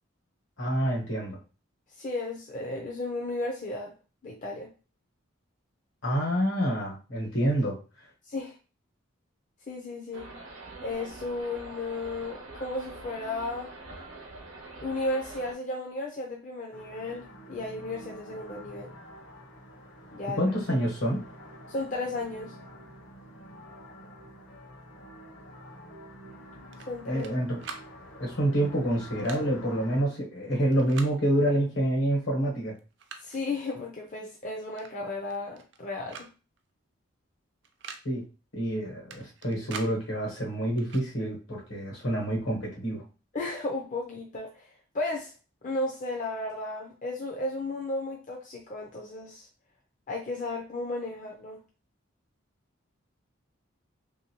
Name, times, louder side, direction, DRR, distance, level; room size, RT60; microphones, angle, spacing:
voice 1, 0.6-1.4 6.0-7.8 20.4-21.2 27.0-27.6 28.2-32.7 38.0-38.2 38.5-43.0, right 1 dB, 70° left, -2 dB, 1.3 m, -27 dB
voice 2, 1.9-3.9 4.2-4.7 8.3-8.6 9.7-10.3 10.8-13.7 14.8-18.9 20.1-20.4 21.7-22.6 26.9-27.2 33.2-36.3 43.3-45.3 45.6-49.5 50.1-51.6, left 2 dB, 40° left, -1 dB, 0.5 m, -34 dB
beer tent, 10.1-15.5, right 2 dB, 85° right, 0.8 m, -44 dB
sound 1, 16.7-30.0, equal, 55° left, 0.8 m, -48 dB
sound 2, 26.7-27.3 27.6-27.9 29.0-29.4 30.7-31.1 32.2-32.3 32.7-33.4 34.8-34.9 35.2-35.8 36.1-36.3 36.6-36.7 37.6-38.0 39.1-39.9 40.8-41.1, right 5 dB, 55° right, 0.4 m, -43 dB
3.0 x 2.7 x 2.9 m, 0.33 s
head